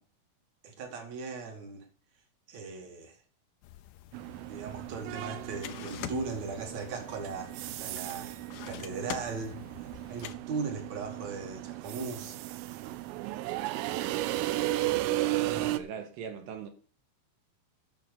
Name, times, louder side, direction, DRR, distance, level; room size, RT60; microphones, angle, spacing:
voice 1, 0.6-1.8 2.5-3.1 4.5-8.3 8.6-9.6 10.1-12.4, right 4 dB, 45° right, 2.7 m, -38 dB
sound 1, 3.6-10.4, left 13 dB, 80° left, 3.1 m, -46 dB
sound 2, 4.1-15.8, right 16 dB, 90° right, 3.5 m, -35 dB
voice 2, 14.8-16.7, right 7 dB, 70° right, 3.1 m, -42 dB
11.0 x 7.1 x 6.7 m
omnidirectional pair, 5.7 m